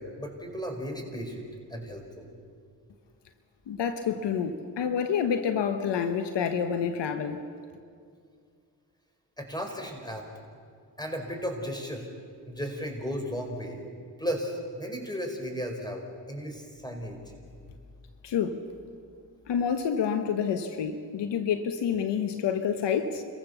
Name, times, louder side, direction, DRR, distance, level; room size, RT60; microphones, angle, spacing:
voice 1, 0.0-2.3 9.4-10.3 11.0-12.1 12.5-13.8 14.2-17.2, equal, 10° left, 3 dB, 5.4 m, -35 dB
voice 2, 3.7-7.4 18.2-18.6 19.5-23.2, left 7 dB, 80° left, 8 dB, 1.2 m, -28 dB
28.0 x 15.5 x 6.9 m, 2.2 s
supercardioid pair, 50°, 41 cm